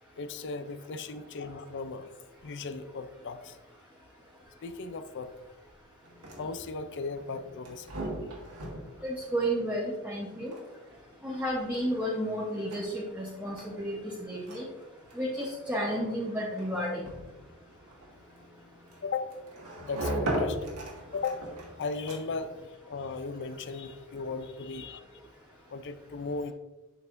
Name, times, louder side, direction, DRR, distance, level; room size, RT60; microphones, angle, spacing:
voice 1, 0.2-2.1 2.4-3.6 4.6-5.3 6.4-7.9 19.0-19.3 19.8-20.7 21.1-21.4 21.8-22.5 22.9-25.0 25.7-26.5, left 4 dB, 55° left, 11 dB, 0.5 m, -36 dB
sound 1, 6.0-22.5, right 1 dB, 85° right, 1.8 m, -40 dB
voice 2, 9.0-10.5 11.2-14.7 15.1-17.1, equal, 5° right, -4 dB, 0.9 m, -32 dB
8.1 x 5.6 x 2.6 m, 1.1 s
head